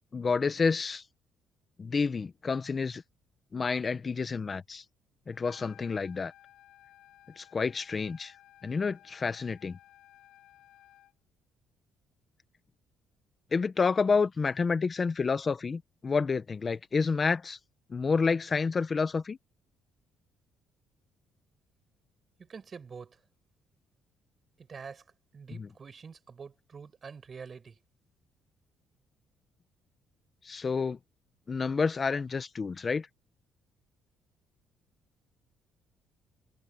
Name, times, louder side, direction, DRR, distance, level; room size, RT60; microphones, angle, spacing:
voice 1, 0.1-1.0 1.8-3.0 3.5-4.8 5.3-6.3 7.4-8.3 8.6-9.8 13.5-17.6 17.9-19.4 25.5-25.7 30.4-31.0 31.5-33.1, left 5 dB, 35° left, 1.4 m, -29 dB
Trumpet, 5.3-11.1, left 13 dB, 80° left, 7.7 m, -57 dB
voice 2, 22.4-23.2 24.6-25.0 25.3-27.8, right 5 dB, 40° right, 6.9 m, -46 dB
cardioid pair, 95°, 0 cm